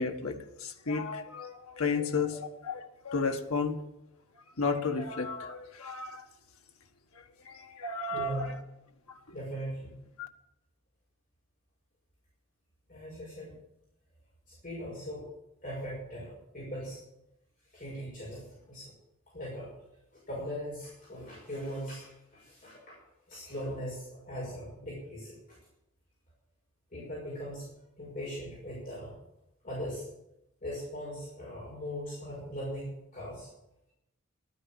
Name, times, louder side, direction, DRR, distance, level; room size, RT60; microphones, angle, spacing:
voice 1, 0.0-2.4 2.6-2.8 3.0-3.8 4.6-6.3 7.4-8.4 10.2-10.3, left 4 dB, 75° left, 4 dB, 1.4 m, -32 dB
voice 2, 8.1-8.5 9.3-9.9 12.9-13.6 14.5-15.3 15.6-17.0 17.7-18.9 19.3-19.7 20.1-23.0 23.3-25.6 26.9-27.7 28.0-29.1 29.6-30.1 30.6-33.5, equal, 40° left, -5 dB, 6.1 m, -40 dB
12.0 x 9.9 x 8.8 m, 0.86 s
head